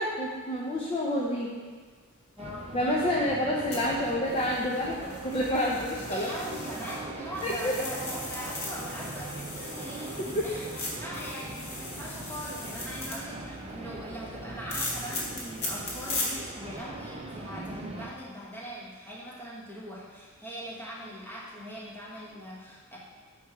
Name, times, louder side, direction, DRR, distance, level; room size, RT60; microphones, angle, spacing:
voice 1, 0.0-1.6 2.7-5.0 5.2-6.3 7.4-7.7 10.3-10.5, left 1 dB, 25° left, -4 dB, 0.6 m, -28 dB
voice 2, 2.4-2.7 6.1-23.0, equal, 10° left, -6 dB, 1.1 m, -41 dB
sound 1, 2.4-18.1, right 2 dB, 25° right, 0.6 m, -41 dB
sound 2, 3.7-7.0 7.3-13.2 14.7-16.3 16.8-16.9, left 2 dB, 50° left, 1.6 m, -38 dB
7.9 x 3.2 x 4.8 m, 1.5 s
head